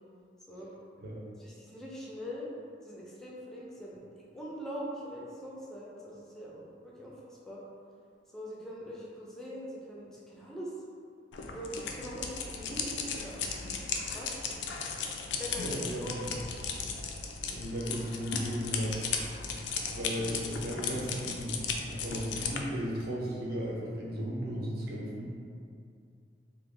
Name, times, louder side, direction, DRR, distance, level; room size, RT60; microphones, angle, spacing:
voice 1, 1.4-2.5 2.8-7.6 8.3-10.7 11.5-14.3 15.3-16.2, equal, 5° left, -6 dB, 0.5 m, -43 dB
sound 1, 11.3-22.6, left 5 dB, 80° left, 0.3 m, -36 dB
voice 2, 15.6-16.3 17.5-19.1 19.9-25.3, equal, 60° right, -4 dB, 0.7 m, -35 dB
2.9 x 2.2 x 3.7 m, 2.3 s
head